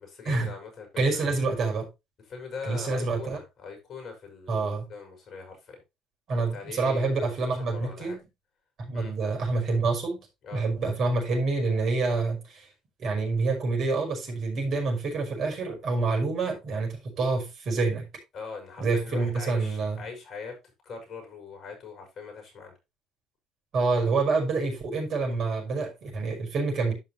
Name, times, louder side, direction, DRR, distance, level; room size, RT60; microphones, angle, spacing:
voice 1, 0.0-1.2 2.3-5.8 6.3-7.3 7.6-8.2 8.9-9.1 10.4-10.6 18.3-20.6 20.8-22.7, left 5 dB, 50° left, 6.1 m, -41 dB
voice 2, 1.0-1.9 2.6-3.4 4.5-4.9 6.3-8.2 8.8-10.2 10.5-12.7 13.0-18.1 18.8-20.0 23.7-26.9, right 3 dB, 50° right, 5.4 m, -27 dB
12.0 x 5.7 x 3.2 m
hypercardioid pair, 70°, 0 cm